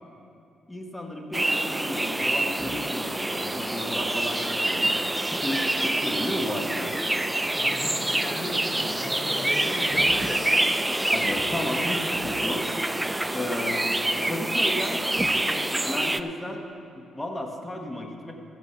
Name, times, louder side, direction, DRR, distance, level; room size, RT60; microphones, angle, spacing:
voice 1, 0.7-4.9 5.4-7.1 11.1-12.6 13.3-13.9 14.3-16.7 17.0-18.3, left 1 dB, 15° left, 2 dB, 1.2 m, -33 dB
sound 1, 1.3-16.2, right 1 dB, 10° right, 0.4 m, -26 dB
voice 2, 7.5-10.6, left 2 dB, 45° left, 3 dB, 1.2 m, -36 dB
14.0 x 8.3 x 5.6 m, 2.5 s
cardioid pair, 90°, 0 cm